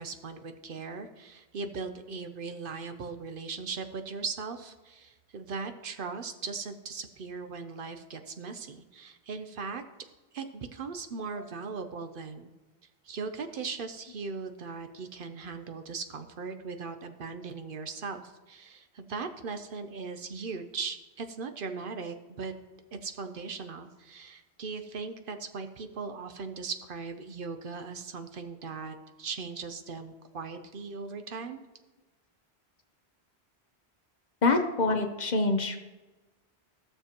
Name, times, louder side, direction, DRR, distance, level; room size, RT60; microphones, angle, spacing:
voice 1, 0.0-9.8 10.3-12.5 13.0-22.5 22.9-31.6, right 4 dB, 60° right, 7 dB, 0.8 m, -39 dB
voice 2, 34.4-35.8, left 3 dB, 50° left, 6 dB, 0.8 m, -26 dB
15.0 x 6.7 x 2.9 m, 1.2 s
omnidirectional pair, 1.1 m